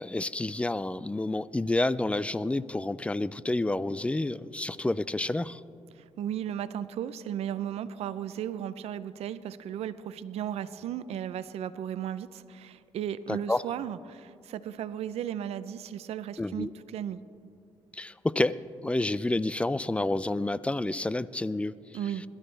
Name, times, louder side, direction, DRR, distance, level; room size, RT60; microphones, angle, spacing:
voice 1, 0.0-5.6 13.3-13.6 16.4-16.7 17.9-18.6 18.8-21.8, left 2 dB, 10° left, 17 dB, 0.4 m, -29 dB
voice 2, 6.0-17.2 21.9-22.2, right 10 dB, 80° right, 15 dB, 0.5 m, -35 dB
21.0 x 13.0 x 3.3 m, 2.4 s
cardioid pair, 90°, 10 cm